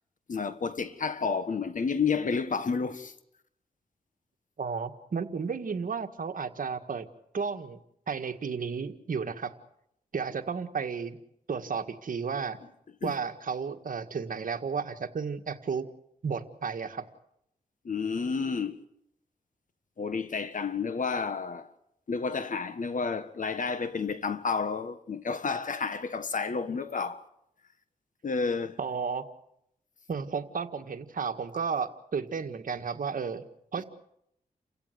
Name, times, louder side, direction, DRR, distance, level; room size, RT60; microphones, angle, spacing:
voice 1, 0.3-3.1 13.0-13.1 17.8-18.8 20.0-21.7 22.1-27.2 28.2-28.8, left 5 dB, 60° left, 1.6 m, -30 dB
voice 2, 4.6-7.1 7.3-7.8 8.1-9.5 10.1-11.2 11.5-12.6 13.0-15.9 16.2-17.1 28.8-29.3 30.1-33.4 33.7-33.8, right 5 dB, 65° right, 1.8 m, -33 dB
29.5 x 16.0 x 8.2 m
cardioid pair, 75°, 15 cm